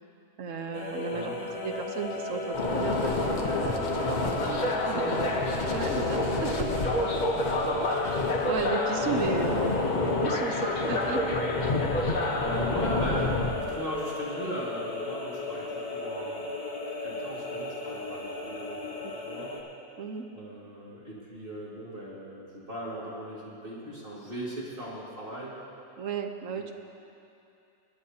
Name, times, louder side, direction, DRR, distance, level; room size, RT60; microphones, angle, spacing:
voice 1, 0.4-5.0 5.7-6.7 8.5-11.4 13.0-13.3 20.0-20.3 26.0-26.7, right 5 dB, 60° right, 4 dB, 1.2 m, -35 dB
sound 1, 0.7-19.6, left 3 dB, 85° left, 1.9 m, -35 dB
sound 2, 2.5-13.5, left 2 dB, 35° left, 0.9 m, -28 dB
voice 2, 7.1-7.6 12.3-13.4 13.7-16.5 17.0-19.6 20.3-25.5, right 1 dB, 35° right, -7 dB, 2.3 m, -38 dB
22.0 x 11.5 x 2.8 m, 2.8 s
omnidirectional pair, 1.6 m